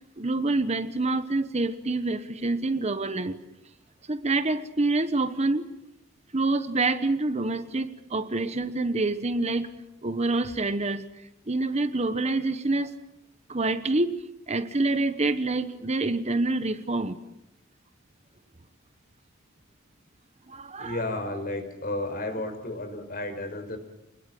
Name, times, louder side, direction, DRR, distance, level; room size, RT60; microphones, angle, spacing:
voice 1, 0.2-3.4 4.1-5.6 6.3-9.7 10.0-11.0 11.5-12.9 13.5-14.2 14.5-17.2 20.5-21.0, right 2 dB, 35° right, 11 dB, 1.1 m, -26 dB
voice 2, 20.8-23.8, left 2 dB, 45° left, 7 dB, 4.9 m, -32 dB
28.5 x 20.5 x 7.7 m, 0.85 s
head